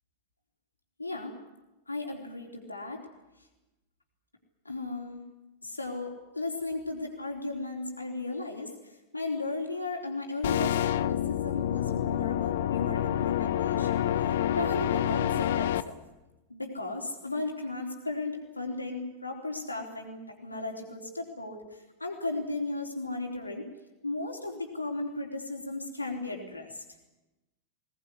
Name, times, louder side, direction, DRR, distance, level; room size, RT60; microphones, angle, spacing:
voice 1, 1.0-1.4 1.9-3.1 4.6-5.2 5.6-16.0 16.5-23.6 24.0-26.8, left 2 dB, 80° left, 2 dB, 3.9 m, -35 dB
sound 1, 10.4-15.8, left 11 dB, 60° left, 0.8 m, -28 dB
21.0 x 19.0 x 9.9 m, 1.0 s
figure-of-eight pair, 90°, 0 cm